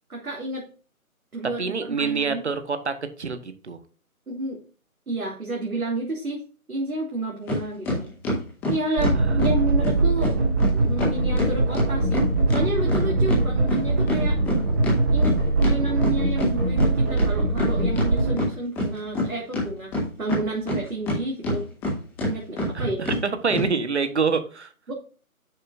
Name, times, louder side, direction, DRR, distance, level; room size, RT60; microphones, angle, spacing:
voice 1, 0.1-0.6 1.3-2.4 4.3-4.6 5.1-8.1 8.7-10.4 10.7-14.4 15.1-19.9 20.2-21.6 22.3-23.0 24.9-25.0, right 2 dB, 75° right, -2 dB, 3.1 m, -30 dB
voice 2, 1.6-3.8 9.1-9.6 22.7-24.7, right 5 dB, 50° right, 10 dB, 1.3 m, -26 dB
sound 1, 7.5-7.6 7.9-9.6 9.8-9.9 10.2-10.3 10.6-10.7 11.0-13.4 13.7-16.5 16.8-16.9 17.2-18.1 18.4-19.3 19.5-21.2 21.4-21.9 22.2-22.3 22.6-22.7 23.1-23.2 23.5-23.7, left 1 dB, 5° left, 1.5 m, -25 dB
sound 2, 9.0-18.3, right 2 dB, 10° right, 1.3 m, -22 dB
10.5 x 8.1 x 2.6 m, 0.38 s
figure-of-eight pair, 160°, 43 cm